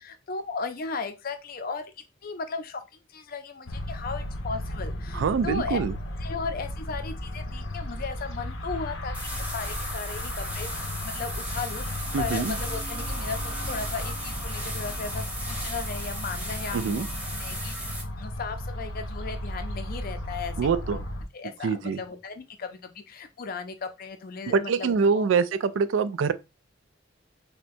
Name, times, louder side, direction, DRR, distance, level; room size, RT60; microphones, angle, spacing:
voice 1, 0.0-1.9 2.2-2.8 3.1-5.8 6.2-17.1 17.4-20.5 20.9-21.0 21.3-25.3, left 4 dB, 50° left, 0.5 m, -36 dB
sound 1, 3.7-21.2, left 1 dB, 80° left, 0.7 m, -35 dB
voice 2, 5.1-5.9 12.1-12.6 16.7-17.1 20.6-21.0 21.6-22.0 24.5-26.3, right 5 dB, 75° right, 0.3 m, -24 dB
sound 2, 9.1-18.0, right 1 dB, 5° right, 0.9 m, -37 dB
sound 3, 10.9-16.6, right 1 dB, 35° right, 1.4 m, -44 dB
5.5 x 2.2 x 2.6 m
head